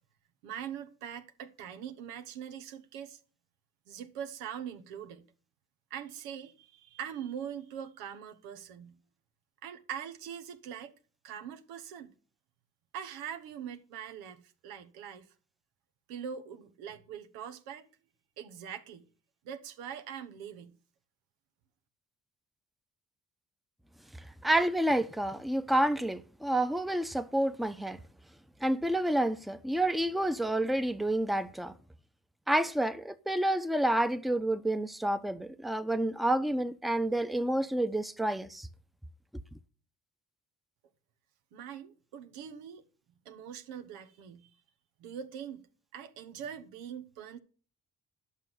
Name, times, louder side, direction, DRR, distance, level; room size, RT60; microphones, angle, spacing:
voice 1, 0.4-3.2 3.9-5.2 5.9-8.9 9.6-10.9 11.2-12.1 12.9-15.3 16.1-17.9 18.4-19.1 19.4-20.8 41.5-42.8 43.2-44.6 45.0-45.7 45.9-47.4, right 8 dB, 90° right, 1.1 m, -42 dB
voice 2, 24.4-28.0 28.6-31.7 32.5-38.7, right 1 dB, ahead, 0.8 m, -29 dB
11.0 x 6.3 x 6.9 m
supercardioid pair, 55°, 36 cm